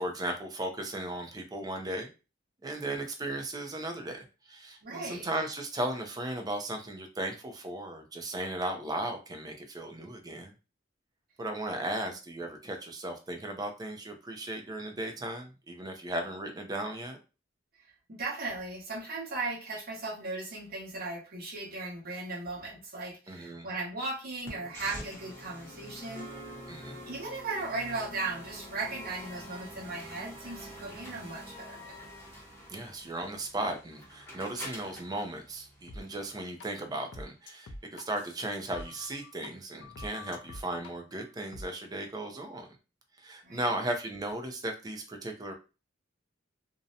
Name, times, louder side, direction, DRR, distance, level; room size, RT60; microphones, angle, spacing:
voice 1, 0.0-2.1 2.6-10.5 11.4-17.2 23.3-23.7 26.7-27.0 32.7-42.7 43.2-45.5, right 1 dB, 20° right, 4 dB, 0.4 m, -36 dB
voice 2, 4.8-5.3 17.8-26.3 27.1-32.1 43.4-43.7, right 3 dB, 50° right, -3 dB, 0.9 m, -37 dB
sound 1, 24.4-36.4, equal, 10° left, 0.7 m, -46 dB
sound 2, 35.9-36.0 36.6-36.7 37.1-39.5 39.8-40.9 41.5-41.7, left 2 dB, 65° left, 0.4 m, -45 dB
2.6 x 2.1 x 2.6 m, 0.31 s
head